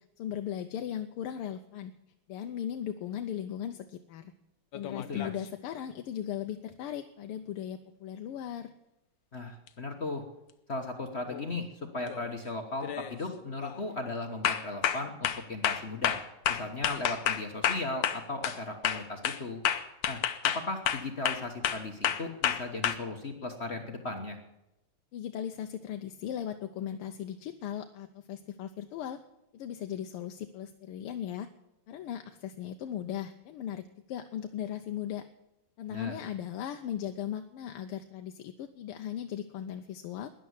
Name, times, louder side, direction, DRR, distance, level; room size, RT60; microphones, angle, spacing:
voice 1, 0.2-1.9 2.3-4.3 4.7-8.7 25.1-29.2 29.5-31.5 31.9-35.2 35.8-40.3, left 10 dB, 90° left, 6 dB, 1.7 m, -37 dB
sound 1, 4.7-5.4 9.7-9.8 11.3-11.6 12.0-12.4 12.8-13.2 13.6-13.8 14.4-18.6 18.8-22.9, left 9 dB, 65° left, 1.5 m, -30 dB
voice 2, 9.3-10.2 10.7-11.7 11.9-16.2 16.5-19.6 20.1-24.4 35.9-36.1, left 2 dB, 35° left, 4 dB, 1.3 m, -37 dB
13.0 x 10.5 x 9.5 m, 0.91 s
omnidirectional pair, 2.4 m